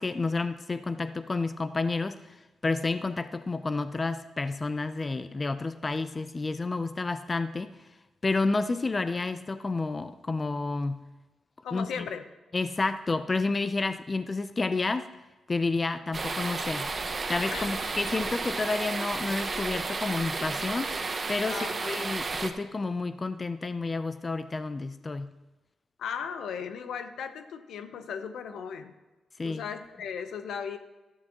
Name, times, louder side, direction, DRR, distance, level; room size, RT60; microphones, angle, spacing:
voice 1, 0.0-7.8 8.2-11.0 11.7-12.1 12.5-15.1 15.5-16.9 17.3-21.0 21.3-25.3 29.4-29.6, left 3 dB, 30° left, 11 dB, 0.5 m, -30 dB
voice 2, 11.6-12.2 17.5-17.9 21.5-22.1 26.0-29.0 29.4-30.8, left 7 dB, 80° left, 9 dB, 0.8 m, -37 dB
sound 1, 16.1-22.5, right 3 dB, 40° right, 1.1 m, -32 dB
13.0 x 11.0 x 2.9 m, 1.1 s
cardioid pair, 70°, 0 cm